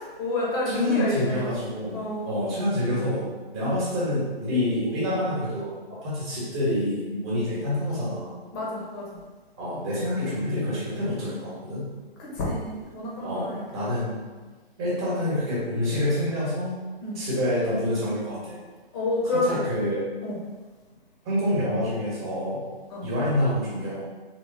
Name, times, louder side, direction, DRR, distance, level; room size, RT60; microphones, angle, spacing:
voice 1, 0.2-1.5 1.9-2.3 3.6-3.7 8.5-9.2 12.2-13.6 17.0-17.2 18.9-19.6 20.2-20.4 22.9-23.1, left 2 dB, 25° left, -5 dB, 0.9 m, -29 dB
voice 2, 0.7-2.0 2.2-3.2 3.5-5.7 6.0-8.3 9.6-11.9 13.2-14.2 14.8-16.7 17.1-18.6 19.4-20.0 21.2-22.6 23.0-24.0, left 1 dB, 25° right, -9 dB, 1.4 m, -27 dB
3.6 x 2.8 x 4.0 m, 1.3 s
figure-of-eight pair, 145°, 31 cm